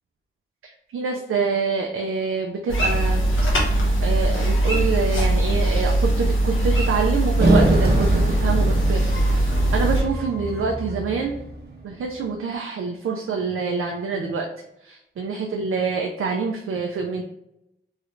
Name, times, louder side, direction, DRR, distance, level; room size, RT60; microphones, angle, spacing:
voice 1, 0.9-11.3 11.8-14.5 14.8-17.2, right 5 dB, 90° right, 1 dB, 0.4 m, -26 dB
sound 1, 2.7-10.0, right 1 dB, 70° left, 1.0 m, -20 dB
sound 2, 7.4-11.9, right 1 dB, 50° right, 0.9 m, -24 dB
3.1 x 2.4 x 3.0 m, 0.84 s
cardioid pair, 45°, 21 cm